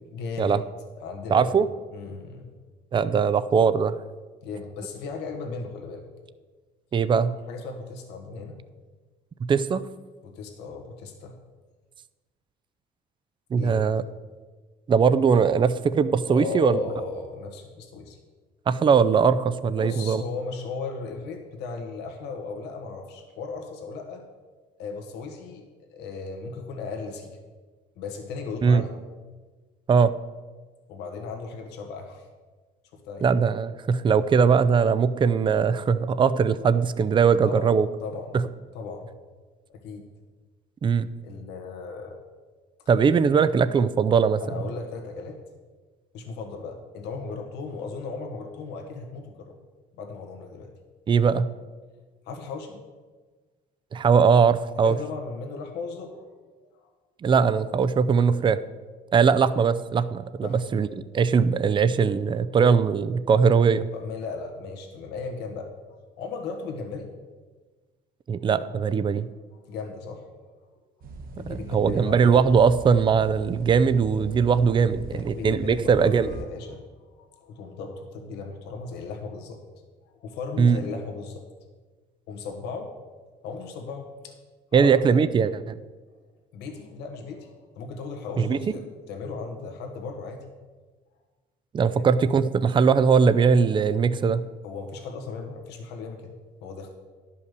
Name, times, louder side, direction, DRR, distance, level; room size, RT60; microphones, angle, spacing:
voice 1, 0.1-0.6 1.0-1.6 1.9-2.5 3.1-3.4 4.4-6.1 7.5-8.6 10.2-11.4 13.5-13.8 16.3-18.2 19.8-24.2 24.8-27.3 28.0-28.9 30.9-32.3 33.0-33.3 37.4-37.8 38.0-38.4 38.7-39.1 39.7-40.0 41.2-42.2 44.4-45.4 46.1-49.5 50.0-50.7 52.2-52.8 54.8-56.3 56.8-56.9 60.4-60.6 63.9-65.7 66.2-67.1 68.4-68.5 69.7-70.3 71.4-72.4 74.9-76.8 77.2-79.6 80.2-81.4 82.3-82.9 83.4-84.3 84.7-85.2 86.5-90.4 92.0-92.1 94.2-94.4 94.6-96.3 96.6-96.9, left 4 dB, 85° left, 3 dB, 1.5 m, -36 dB
voice 2, 1.3-1.7 2.9-4.0 6.9-7.3 9.5-9.8 13.5-14.0 14.9-16.8 18.7-20.2 28.6-28.8 29.9-30.1 33.2-37.9 40.8-41.1 42.9-44.4 51.1-51.5 53.9-54.9 57.2-58.6 59.1-60.9 61.1-63.9 68.3-69.3 71.4-76.3 80.6-80.8 84.7-85.8 88.4-88.6 91.7-94.4, right 6 dB, 30° right, 13 dB, 0.5 m, -20 dB
sound 1, 71.0-76.4, right 3 dB, 60° right, 1.2 m, -40 dB
11.0 x 5.6 x 6.7 m, 1.3 s
cardioid pair, 110°, 17 cm